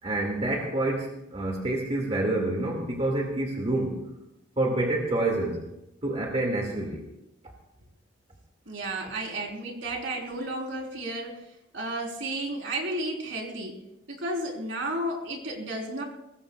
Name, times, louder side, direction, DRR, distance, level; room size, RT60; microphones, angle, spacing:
voice 1, 0.0-4.1 4.6-5.6 6.0-7.1, right 2 dB, 30° right, -1 dB, 2.2 m, -28 dB
voice 2, 8.7-11.5 11.7-13.8 14.1-16.0, right 1 dB, 65° right, 0 dB, 4.1 m, -32 dB
22.5 x 20.0 x 2.4 m, 0.86 s
head